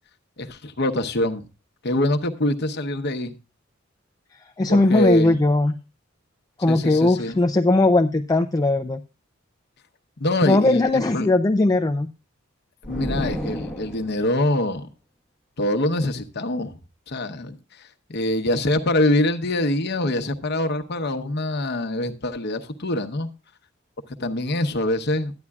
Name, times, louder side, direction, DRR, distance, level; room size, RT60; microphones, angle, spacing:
voice 1, 0.4-1.4 1.8-3.3 4.7-5.3 6.7-7.4 10.2-11.3 12.8-14.9 15.6-16.8 17.1-23.3 24.2-25.3, left 1 dB, 55° left, 0.9 m, -24 dB
voice 2, 4.6-5.8 6.6-9.0 10.4-12.1, left 2 dB, 20° left, 0.4 m, -19 dB
sound 1, 12.8-14.4, equal, ahead, 1.2 m, -31 dB
13.0 x 9.7 x 2.3 m
head